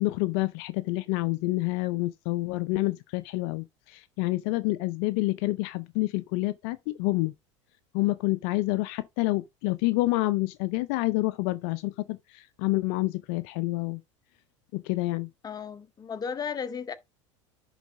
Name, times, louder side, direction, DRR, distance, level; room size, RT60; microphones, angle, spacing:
voice 1, 0.0-7.3 7.9-14.0 14.7-15.3, left 20 dB, 55° left, 0.5 m, -28 dB
voice 2, 15.4-16.9, left 6 dB, 25° left, 0.9 m, -34 dB
10.5 x 4.0 x 3.7 m
hypercardioid pair, 80°, 16 cm